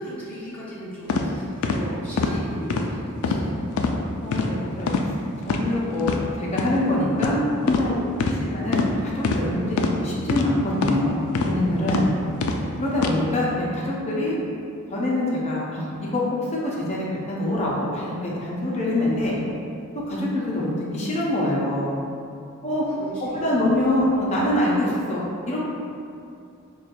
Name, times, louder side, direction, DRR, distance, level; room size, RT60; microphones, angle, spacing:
voice 1, 0.0-3.7 11.7-12.3 18.9-19.3 22.9-23.2 23.5-23.7, right 1 dB, 5° left, -11 dB, 1.0 m, -37 dB
sound 1, 1.1-1.2 1.6-1.8 2.2-2.3 2.7-2.9 3.2-3.4 3.8-3.9 4.3-4.5 4.9-5.1 5.4-5.6 6.0-6.2 6.6-6.7 7.2-7.4 7.7-7.8 8.2-8.3 8.7-8.9 9.2-9.4 9.8-9.9 10.3-10.4 10.8-11.0 11.3-11.5 11.9-12.0 12.4-12.6 13.0-13.1, left 4 dB, 75° left, 0.3 m, -23 dB
voice 2, 4.2-4.9 5.4-6.1 6.4-7.4 7.7-8.0 8.4-12.0 12.8-14.4 14.9-16.2 16.9-19.3 20.1-22.0 22.6-22.8 23.2-25.6, left 1 dB, 30° left, -5 dB, 0.6 m, -25 dB
4.3 x 2.3 x 2.5 m, 2.5 s
head